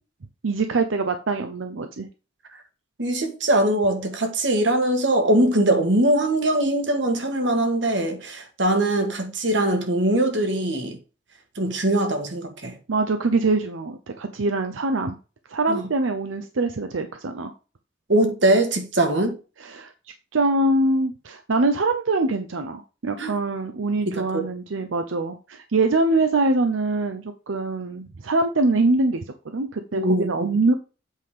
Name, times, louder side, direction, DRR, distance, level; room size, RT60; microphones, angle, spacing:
voice 1, 0.4-2.1 12.9-15.2 15.5-17.5 19.6-19.9 20.3-30.7, right 2 dB, 90° right, 0.7 m, -23 dB
voice 2, 3.0-11.0 11.5-12.8 15.7-15.8 18.1-19.3 23.2-23.3 24.1-24.5 29.9-30.5, right 1 dB, 70° right, 1.6 m, -22 dB
8.2 x 3.7 x 5.0 m
head